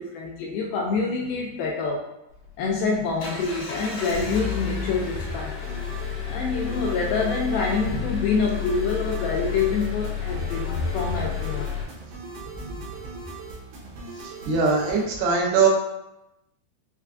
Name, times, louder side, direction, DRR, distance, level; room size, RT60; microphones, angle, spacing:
voice 1, 0.0-2.1 2.6-5.6 6.3-11.7, left 4 dB, 85° left, -1 dB, 2.2 m, -26 dB
Engine, 2.3-11.8, left 8 dB, 65° left, 2.4 m, -31 dB
sound 1, 5.6-15.0, right 3 dB, 70° right, 2.3 m, -40 dB
voice 2, 14.2-15.7, right 5 dB, 90° right, -1 dB, 2.9 m, -22 dB
6.6 x 2.3 x 2.4 m, 0.88 s
omnidirectional pair, 4.6 m